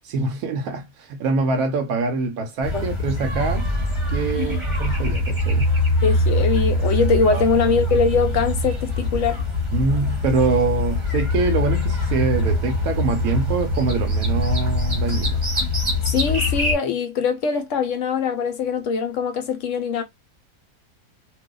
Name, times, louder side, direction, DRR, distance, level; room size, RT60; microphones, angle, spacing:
voice 1, 0.0-3.7 4.1-5.7 7.3-7.4 9.7-15.4, right 3 dB, 85° right, 1.1 m, -24 dB
sound 1, 2.6-16.7, left 1 dB, 25° right, 0.9 m, -23 dB
voice 2, 6.0-9.4 16.1-20.0, left 5 dB, 70° left, 0.8 m, -22 dB
2.6 x 2.2 x 3.6 m
omnidirectional pair, 1.5 m